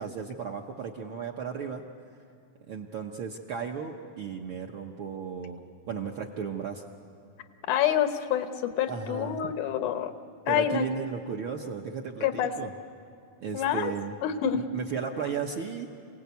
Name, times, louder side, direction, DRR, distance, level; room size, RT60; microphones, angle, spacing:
voice 1, 0.0-1.8 2.7-6.8 8.9-9.4 10.5-12.7 13.4-14.2 14.5-15.9, right 6 dB, 65° right, 2 dB, 1.3 m, -35 dB
voice 2, 7.7-10.2 10.5-10.9 12.2-12.5 13.5-13.9 14.2-14.6, left 10 dB, 85° left, 8 dB, 2.6 m, -27 dB
27.0 x 18.0 x 8.3 m, 2.5 s
omnidirectional pair, 3.4 m